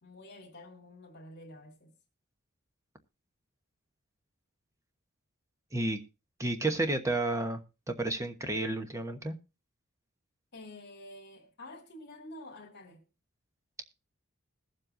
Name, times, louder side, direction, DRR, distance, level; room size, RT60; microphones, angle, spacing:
voice 1, 0.0-1.9 10.5-13.1, left 1 dB, 55° left, 2.2 m, -49 dB
voice 2, 6.4-9.4, right 2 dB, 15° right, 1.1 m, -31 dB
21.0 x 7.5 x 2.6 m
head